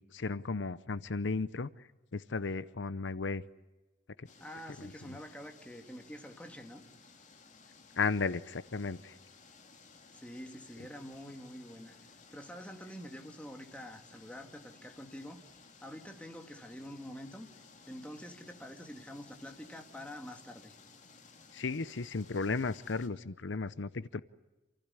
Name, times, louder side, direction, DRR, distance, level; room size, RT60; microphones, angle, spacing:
voice 1, 0.0-1.7 2.1-3.4 5.1-5.2 8.0-9.1 21.5-24.2, left 4 dB, 80° left, 15 dB, 0.7 m, -34 dB
sound 1, 4.3-23.1, left 4 dB, 40° left, 2.5 m, -58 dB
voice 2, 4.4-6.8 10.1-15.4 15.8-17.5 17.9-20.8, equal, 5° left, 4 dB, 2.2 m, -47 dB
28.0 x 15.5 x 9.7 m, 1.1 s
head